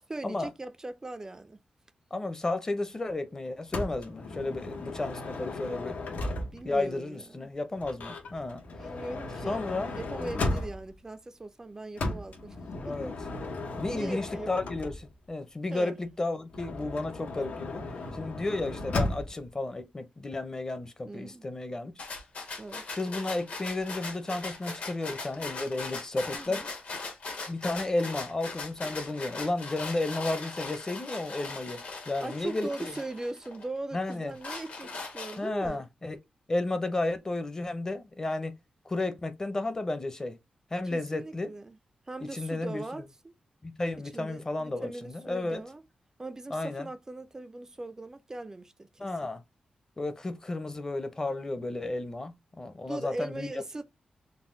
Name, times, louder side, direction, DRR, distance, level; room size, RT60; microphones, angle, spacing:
voice 1, 0.1-1.6 6.5-7.5 8.8-12.6 12.9-13.0 13.8-14.5 15.7-15.9 18.0-18.4 21.0-21.5 22.6-22.9 26.3-26.7 32.2-35.8 40.8-41.8 42.1-43.3 44.1-45.8 46.2-49.1 52.9-53.8, right 2 dB, 20° right, 0.3 m, -40 dB
voice 2, 2.1-6.0 6.6-8.6 9.5-10.0 12.8-13.1 13.8-17.8 18.1-21.9 23.0-26.6 27.5-32.9 33.9-34.3 35.4-36.2 36.5-38.5 38.9-40.4 40.7-41.5 42.3-43.0 43.6-45.6 46.5-46.9 49.0-49.4 50.0-53.5, left 2 dB, 25° left, 0.6 m, -33 dB
Motor vehicle (road) / Sliding door, 3.7-6.8 7.8-11.0 12.0-15.3 16.5-19.5, left 2 dB, 85° left, 0.9 m, -35 dB
sound 1, 22.0-33.7 34.1-35.7, left 3 dB, 70° left, 1.4 m, -39 dB
4.0 x 2.1 x 3.7 m
wide cardioid pair, 125°, 3 cm